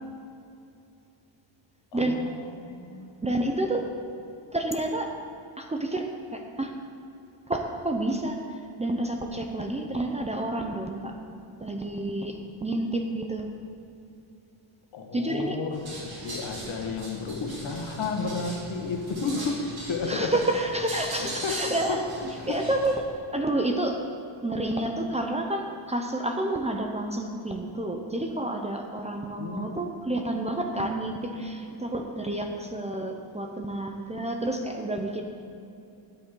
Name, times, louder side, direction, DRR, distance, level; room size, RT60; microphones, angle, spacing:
voice 1, 1.9-3.1 14.9-20.3 21.2-22.6 29.4-29.8 30.1-30.2, left 4 dB, 70° left, 2 dB, 1.7 m, -33 dB
voice 2, 3.2-3.9 4.5-5.1 5.6-6.7 7.5-11.1 11.6-13.5 15.1-15.6 20.1-22.0 22.5-24.0 24.4-35.2, right 1 dB, 15° right, 3 dB, 0.7 m, -29 dB
sound 1, 15.7-22.9, right 1 dB, 50° right, 2.8 m, -39 dB
12.5 x 10.0 x 3.9 m, 2.7 s
cardioid pair, 155°, 47 cm